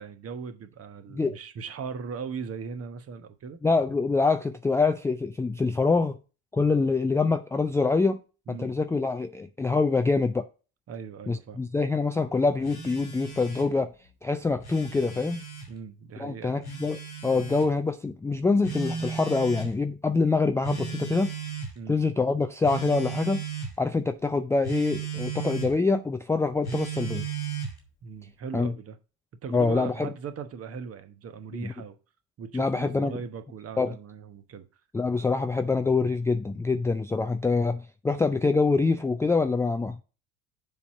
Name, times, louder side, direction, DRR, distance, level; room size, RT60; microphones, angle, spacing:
voice 1, 0.0-3.6 8.5-8.7 10.9-11.6 15.7-16.6 21.7-22.0 28.0-29.0 29.4-32.0 32.4-34.7, right 6 dB, 35° right, 1.1 m, -39 dB
voice 2, 3.6-6.2 6.5-8.2 8.5-10.4 11.3-13.9 14.2-15.4 16.2-21.3 21.9-23.4 23.8-27.3 28.5-28.7 29.5-30.1 31.6-31.7 32.5-33.2 33.8-33.9 34.9-40.0, left 3 dB, 5° left, 0.4 m, -25 dB
Telephone, 12.6-13.7 14.5-15.7 16.6-17.7 18.6-19.7 20.6-21.8 22.6-23.7 24.6-25.7 26.6-27.8, right 6 dB, 85° left, 2.4 m, -35 dB
7.2 x 4.2 x 6.6 m
figure-of-eight pair, 65°, 43 cm